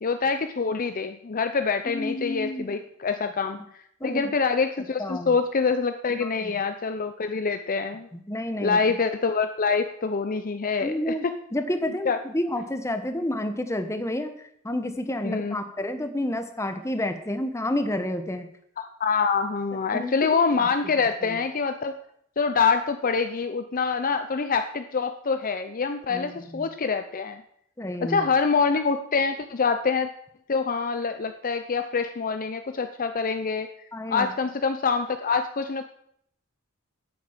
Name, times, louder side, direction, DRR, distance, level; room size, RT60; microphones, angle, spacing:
voice 1, 0.0-3.6 4.0-8.1 8.6-11.1 12.1-12.2 15.2-15.6 18.8-21.9 22.4-27.4 28.0-30.1 30.5-33.7 34.1-35.8, left 5 dB, 40° left, 8 dB, 0.6 m, -25 dB
voice 2, 1.8-2.8 4.0-4.2 5.0-5.3 6.2-6.6 8.1-9.0 10.8-11.2 11.5-14.3 14.6-18.5 19.9-20.7 21.2-21.4 26.1-26.7 27.8-28.3 33.9-34.3, left 1 dB, 15° left, 8 dB, 1.2 m, -30 dB
9.5 x 8.6 x 7.2 m, 0.70 s
head